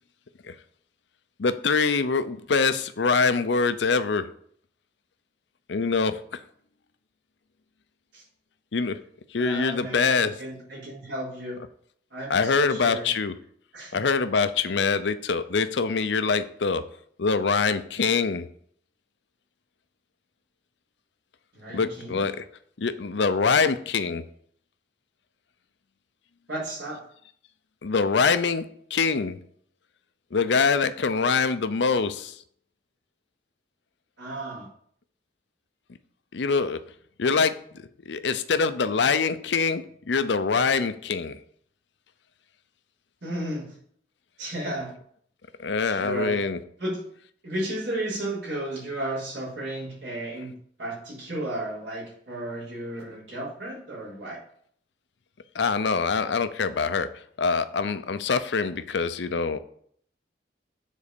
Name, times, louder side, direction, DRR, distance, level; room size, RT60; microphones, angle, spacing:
voice 1, 1.4-4.3 5.7-6.4 8.7-9.0 9.3-10.3 12.3-13.3 13.9-16.8 17.2-18.5 21.7-22.4 22.8-24.2 27.8-28.7 28.9-29.4 30.3-32.4 36.3-36.8 37.2-41.4 45.6-46.6 55.5-57.1 57.4-59.6, left 5 dB, 75° left, 11 dB, 0.6 m, -24 dB
voice 2, 9.4-11.6 12.1-13.1 13.7-14.0 21.5-22.2 26.5-27.0 34.2-34.7 43.2-43.7 44.4-44.9 45.9-46.4 46.8-47.0 47.4-54.4, right 1 dB, 80° right, -8 dB, 3.9 m, -34 dB
7.3 x 4.2 x 6.7 m, 0.63 s
head